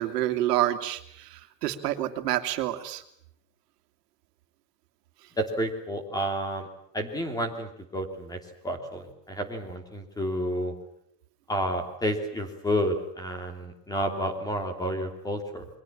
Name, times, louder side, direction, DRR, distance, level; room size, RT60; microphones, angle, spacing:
voice 1, 0.0-3.0, right 13 dB, 70° right, 8 dB, 2.6 m, -28 dB
voice 2, 5.4-6.7 6.9-10.7 11.5-15.7, equal, 5° left, 6 dB, 2.9 m, -30 dB
29.0 x 23.5 x 7.3 m, 0.71 s
supercardioid pair, 170°, 49 cm